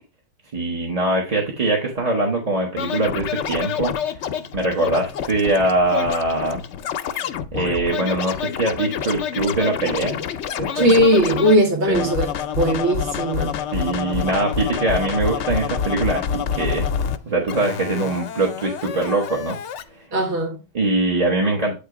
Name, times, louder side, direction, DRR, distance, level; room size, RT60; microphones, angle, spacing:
voice 1, 0.5-4.0 4.5-6.6 7.5-10.2 10.6-11.0 11.9-12.1 13.7-16.8 17.3-19.6 20.7-21.8, right 2 dB, 35° right, 1.0 m, -22 dB
Scratching (performance technique), 2.8-11.6 11.9-17.2 17.5-19.8, left 8 dB, 85° left, 0.9 m, -27 dB
voice 2, 10.7-12.3 12.6-13.6 20.1-20.6, equal, 75° right, 1.7 m, -18 dB
8.5 x 2.9 x 4.7 m
omnidirectional pair, 1.2 m